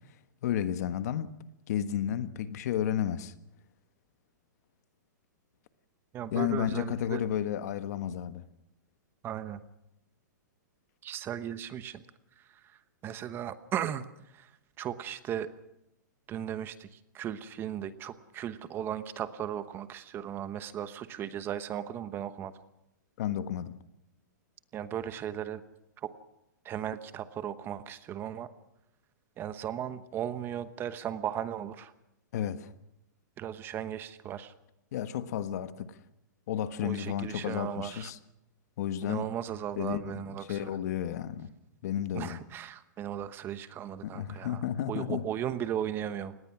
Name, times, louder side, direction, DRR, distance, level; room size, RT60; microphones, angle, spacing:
voice 1, 0.4-1.3 1.7-3.3 6.3-8.4 23.2-23.8 32.3-32.7 34.9-35.9 36.5-38.2 38.8-39.3 39.8-40.2 40.5-41.5 41.8-42.4 44.0-45.2, left 10 dB, 60° left, 1.5 m, -32 dB
voice 2, 6.1-7.2 9.2-9.6 11.0-12.0 12.4-14.5 14.8-15.5 16.3-22.5 24.7-25.6 26.0-26.1 26.6-28.5 29.4-31.9 33.4-34.5 36.8-38.1 39.0-40.8 42.1-46.4, right 10 dB, 20° right, 1.0 m, -36 dB
25.5 x 19.5 x 6.1 m
hypercardioid pair, 150°, 10 cm